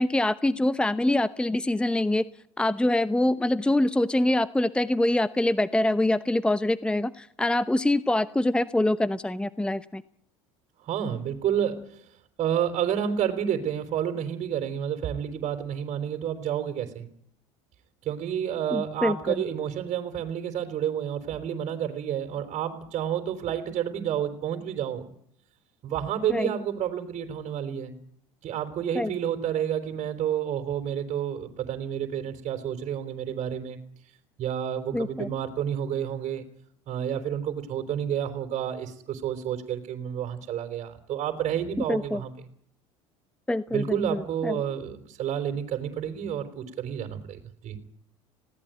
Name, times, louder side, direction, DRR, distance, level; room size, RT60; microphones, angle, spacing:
voice 1, 0.0-2.2 2.6-10.0 18.7-19.4 26.3-26.5 28.9-29.1 34.9-35.3 41.9-42.2 43.5-44.6, left 1 dB, 5° left, 14 dB, 0.8 m, -25 dB
voice 2, 10.8-12.0 12.4-17.1 18.0-25.1 25.8-27.9 28.4-33.8 34.4-36.4 36.9-42.3 43.7-47.8, right 9 dB, 45° right, 5 dB, 3.9 m, -30 dB
20.0 x 17.5 x 9.1 m, 0.65 s
supercardioid pair, 90°, 15 cm